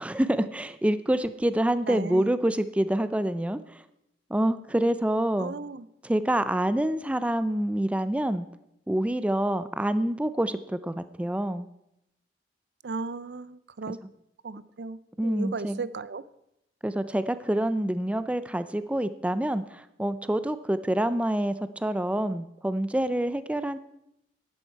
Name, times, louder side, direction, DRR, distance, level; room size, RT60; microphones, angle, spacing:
voice 1, 0.0-3.8 4.3-5.6 6.0-8.5 8.9-11.7 15.2-15.8 16.8-23.8, right 1 dB, 5° right, 13 dB, 0.4 m, -27 dB
voice 2, 1.9-2.3 5.4-5.9 12.8-14.0 14.4-16.2, right 4 dB, 65° right, 17 dB, 0.5 m, -35 dB
12.0 x 11.0 x 4.5 m, 0.84 s
head